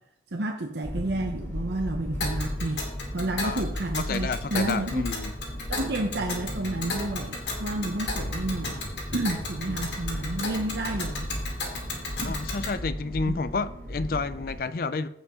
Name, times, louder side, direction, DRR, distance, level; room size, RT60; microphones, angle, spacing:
voice 1, 0.3-2.8 3.1-5.0 5.7-11.3 12.2-12.4 13.3-13.4, right 2 dB, 75° right, 0.8 m, -30 dB
sound 1, 0.8-14.5, equal, 10° left, 3.0 m, -36 dB
Tick, 2.2-12.8, left 2 dB, 85° left, 2.4 m, -35 dB
voice 2, 4.1-5.3 12.2-15.1, left 4 dB, 55° left, 0.4 m, -30 dB
15.5 x 5.3 x 3.7 m
head